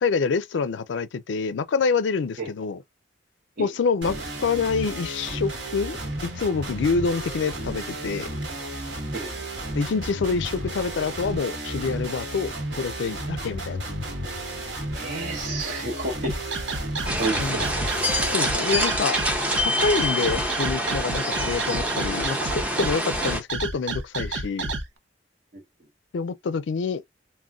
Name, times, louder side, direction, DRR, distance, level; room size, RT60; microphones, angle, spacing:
voice 1, 0.0-2.8 3.6-6.0 6.4-8.3 9.7-13.8 17.4-17.6 18.3-19.2 19.8-24.7 26.1-27.0, left 5 dB, 75° left, 0.4 m, -26 dB
sound 1, 4.0-18.3, right 1 dB, 70° right, 1.2 m, -33 dB
voice 2, 14.9-16.3 17.2-17.7, right 2 dB, 50° right, 0.9 m, -30 dB
sound 2, 16.2-24.8, right 3 dB, 85° right, 0.6 m, -30 dB
sound 3, 17.0-23.4, equal, 5° right, 0.5 m, -26 dB
3.7 x 2.1 x 2.3 m
head